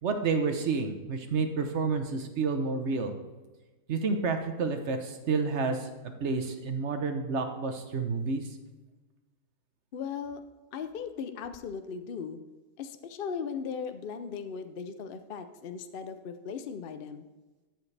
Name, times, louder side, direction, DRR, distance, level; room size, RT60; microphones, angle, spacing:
voice 1, 0.0-3.1 3.9-5.9 6.2-8.5, right 4 dB, 50° right, 6 dB, 1.1 m, -29 dB
voice 2, 9.9-10.4 10.7-12.4 12.8-17.2, left 6 dB, 70° left, 9 dB, 0.5 m, -38 dB
13.0 x 7.3 x 3.3 m, 1.2 s
omnidirectional pair, 1.7 m